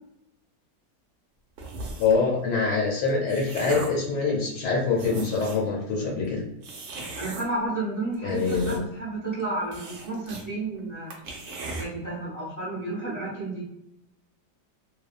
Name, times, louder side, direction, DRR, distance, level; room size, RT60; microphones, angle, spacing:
sound 1, 1.6-2.2 2.9-4.1 4.6-4.7 4.9-5.7 6.6-7.5 8.1-9.0 9.3-9.4 9.7-10.5 10.8-10.9 11.1-11.9, right 3 dB, 65° right, 0.8 m, -37 dB
voice 1, 2.0-6.4 8.2-8.8, left 4 dB, 75° left, -3 dB, 1.2 m, -25 dB
voice 2, 7.2-11.1 11.8-13.6, right 2 dB, 25° right, -8 dB, 0.3 m, -31 dB
2.7 x 2.2 x 2.4 m, 0.84 s
omnidirectional pair, 1.8 m